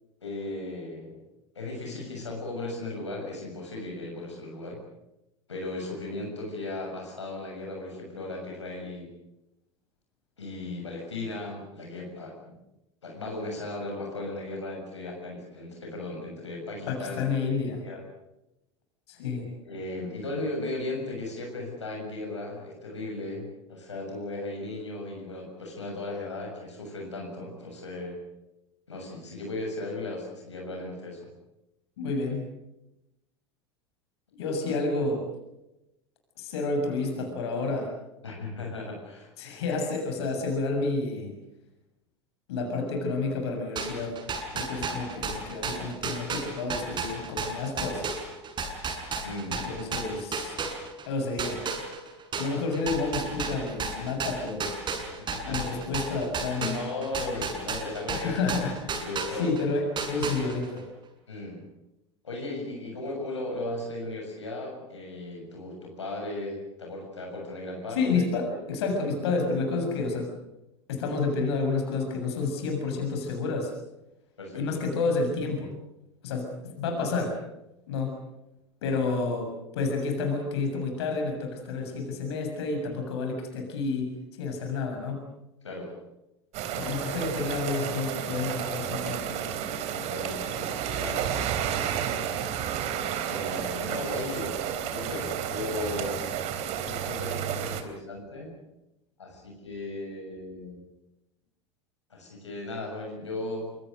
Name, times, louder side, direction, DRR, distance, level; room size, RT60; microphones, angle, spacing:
voice 1, 0.2-1.2 1.6-4.8 5.5-9.1 10.4-12.3 13.0-17.2 17.8-18.0 19.6-28.2 28.9-31.3 38.2-39.3 49.2-49.6 55.0-55.7 56.6-58.4 58.8-59.5 61.3-61.6 62.2-68.6 74.4-74.8 85.6-85.9 89.9-91.7 93.3-96.2 96.8-98.5 99.2-100.8 102.1-103.8, left 2 dB, 85° left, 0 dB, 7.0 m, -36 dB
voice 2, 16.9-17.8 19.1-19.5 32.0-32.4 34.4-35.3 36.4-37.9 39.4-41.3 42.5-44.2 44.5-48.1 49.5-50.6 51.1-51.6 52.4-54.7 55.5-56.8 58.1-58.9 59.4-60.9 67.9-70.3 70.9-73.7 74.5-75.7 76.2-77.4 77.9-78.2 78.8-84.1 84.4-85.2 86.8-89.3, left 3 dB, 70° left, 4 dB, 7.0 m, -30 dB
sound 1, 43.8-51.1 51.4-59.6 60.0-60.8, right 4 dB, 30° right, 6.8 m, -33 dB
sound 2, 86.5-97.8, right 9 dB, 50° right, 3.6 m, -31 dB
26.0 x 24.5 x 6.6 m, 0.91 s
hypercardioid pair, 80°, 14 cm